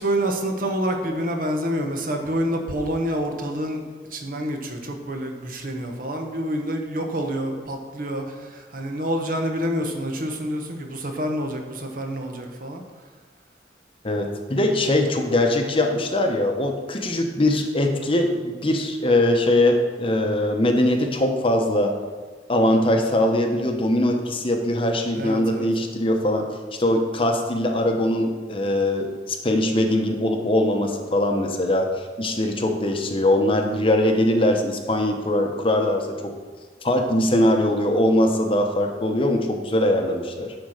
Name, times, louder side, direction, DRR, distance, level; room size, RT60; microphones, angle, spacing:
voice 1, 0.0-3.8 4.1-12.8 25.1-25.7, equal, 50° right, 3 dB, 1.1 m, -27 dB
voice 2, 14.0-21.9 22.5-26.5 26.8-31.9 32.2-36.3 36.8-40.5, left 1 dB, 30° left, 4 dB, 0.9 m, -21 dB
10.5 x 4.4 x 6.6 m, 1.5 s
head